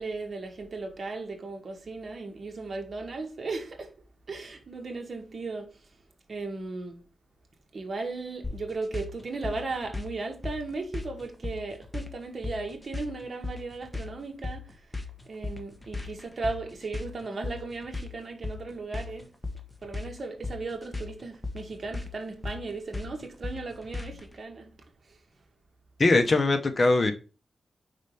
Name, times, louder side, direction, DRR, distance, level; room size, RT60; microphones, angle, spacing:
voice 1, 0.0-4.0 4.3-6.0 6.3-7.0 7.7-19.4 19.8-25.2, right 3 dB, 50° right, 1.7 m, -36 dB
sound 1, 8.4-24.3, left 3 dB, 15° left, 1.2 m, -37 dB
voice 2, 26.0-27.1, left 2 dB, 40° left, 0.9 m, -21 dB
5.0 x 4.3 x 5.4 m
wide cardioid pair, 95°, 0 cm